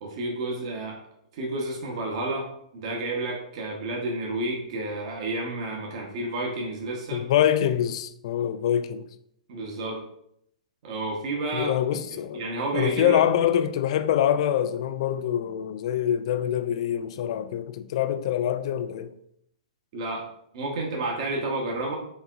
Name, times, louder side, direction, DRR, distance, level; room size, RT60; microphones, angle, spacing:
voice 1, 0.0-1.0 1.3-7.2 9.5-10.0 10.8-12.0 12.3-13.2 19.9-20.3 20.5-21.9, right 2 dB, 55° right, 1.0 m, -30 dB
voice 2, 7.1-9.0 11.5-12.4 12.7-19.1, left 10 dB, 55° left, 0.3 m, -25 dB
4.1 x 3.5 x 2.5 m
hypercardioid pair, 130°, 4 cm